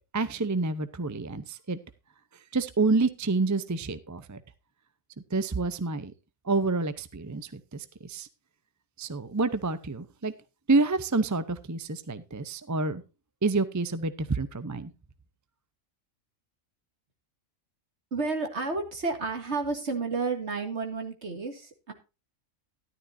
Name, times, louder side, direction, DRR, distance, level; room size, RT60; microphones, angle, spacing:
voice 1, 0.1-1.8 2.5-4.4 5.3-6.1 6.4-8.3 9.0-10.3 10.7-13.0 13.4-14.9, right 3 dB, 20° right, 14 dB, 0.5 m, -28 dB
voice 2, 18.1-21.9, right 4 dB, 55° right, 5 dB, 2.4 m, -31 dB
13.5 x 12.0 x 2.6 m, 0.29 s
omnidirectional pair, 1.4 m